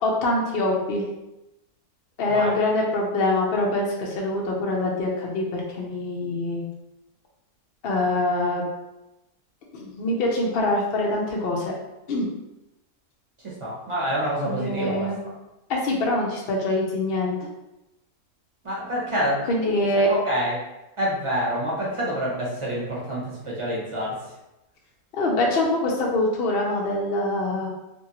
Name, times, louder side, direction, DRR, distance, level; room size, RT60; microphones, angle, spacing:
voice 1, 0.0-1.0 2.2-6.6 7.8-8.6 9.7-11.7 12.1-12.3 14.4-15.2 15.7-17.4 19.5-20.1 25.1-27.7, left 2 dB, 65° left, -1 dB, 0.5 m, -24 dB
voice 2, 13.4-15.1 18.6-19.5 19.8-20.6 21.0-24.2, equal, 25° right, -6 dB, 0.7 m, -27 dB
2.9 x 2.6 x 2.8 m, 0.94 s
omnidirectional pair, 1.6 m